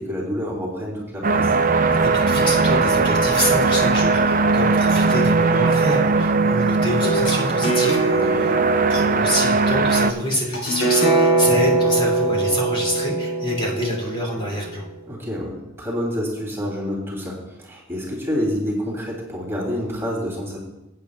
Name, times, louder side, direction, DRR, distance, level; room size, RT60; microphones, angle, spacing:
voice 1, 0.0-1.5 4.4-4.5 8.1-8.5 11.4-11.6 15.0-20.6, equal, 10° right, -4 dB, 3.0 m, -28 dB
sound 1, 1.2-10.1, right 3 dB, 40° right, 0.5 m, -19 dB
voice 2, 2.0-8.5 8.9-14.8, left 1 dB, 30° left, -2 dB, 3.0 m, -26 dB
sound 2, 7.0-14.7, right 3 dB, 70° left, 3.1 m, -22 dB
19.5 x 9.0 x 2.4 m, 0.98 s
head